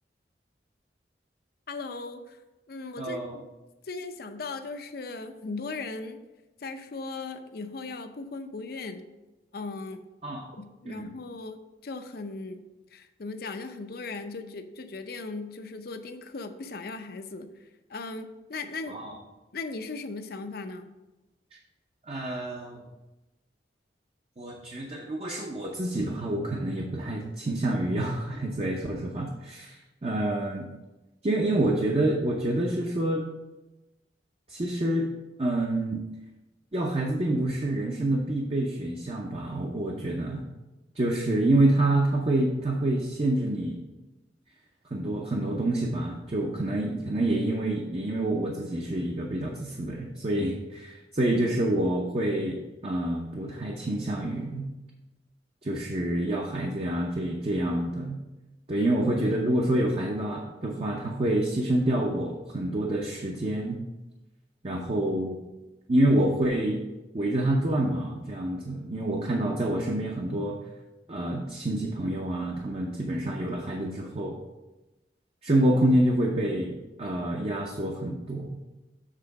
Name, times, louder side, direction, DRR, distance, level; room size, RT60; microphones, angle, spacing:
voice 1, 1.7-2.4 2.7-3.4 3.8-6.2 6.6-9.1 9.5-10.0 10.6-12.6 12.9-19.0 19.5-20.9 58.7-58.9 64.7-64.8, left 3 dB, 60° left, 8 dB, 0.6 m, -38 dB
voice 2, 3.0-3.4 10.2-10.5 10.9-11.1 18.9-19.1 22.1-22.9 24.4-30.7 31.2-33.2 34.5-35.1 35.4-36.0 36.7-40.4 41.0-43.8 44.9-54.7 55.6-58.2 58.7-63.8 64.6-65.4 65.9-66.8 67.1-70.6 71.1-74.4 75.4-78.7, right 1 dB, 35° right, -1 dB, 0.7 m, -27 dB
7.5 x 3.7 x 5.8 m, 1.1 s
head